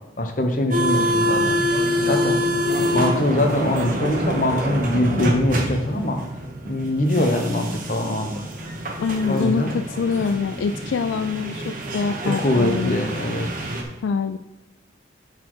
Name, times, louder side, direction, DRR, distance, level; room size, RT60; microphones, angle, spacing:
voice 1, 0.2-1.6 2.1-2.4 2.9-6.2 6.6-8.4 9.3-9.7 12.2-13.5, left 1 dB, 45° left, 4 dB, 1.0 m, -22 dB
sound 1, 0.7-13.8, equal, 45° right, 1.1 m, -26 dB
voice 2, 9.0-13.0 14.0-14.4, left 5 dB, 90° left, 10 dB, 0.3 m, -24 dB
10.0 x 4.1 x 4.9 m, 1.0 s
head